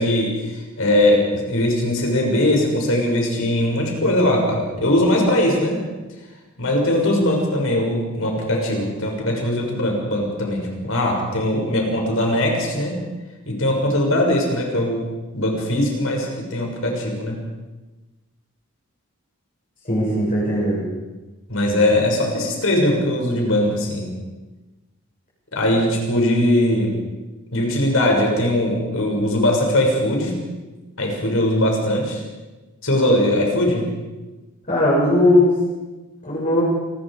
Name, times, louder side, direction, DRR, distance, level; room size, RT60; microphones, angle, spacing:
voice 1, 0.0-5.8 6.6-13.0 13.5-15.0 15.3-17.4 21.5-24.1 25.5-27.0 27.5-30.4 31.0-32.2 32.8-33.9, left 1 dB, 70° left, 0 dB, 6.5 m, -20 dB
voice 2, 19.8-20.9 34.7-35.5 36.2-36.6, left 1 dB, 40° left, -6 dB, 7.0 m, -18 dB
27.5 x 21.5 x 5.1 m, 1.2 s
head